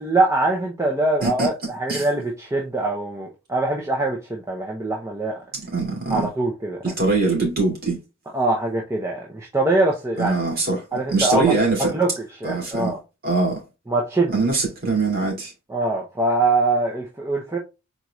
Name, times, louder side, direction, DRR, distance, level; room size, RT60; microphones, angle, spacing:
voice 1, 0.0-5.4 6.1-6.8 8.3-10.3 10.9-11.5 11.9-12.1 12.4-13.0 13.9-14.3 15.7-17.6, right 2 dB, 15° right, 0.7 m, -23 dB
voice 2, 5.5-6.3 6.8-8.0 10.2-11.9 12.4-12.9 13.2-13.6 14.3-15.5, right 3 dB, 45° right, 2.6 m, -22 dB
4.6 x 4.1 x 2.3 m
head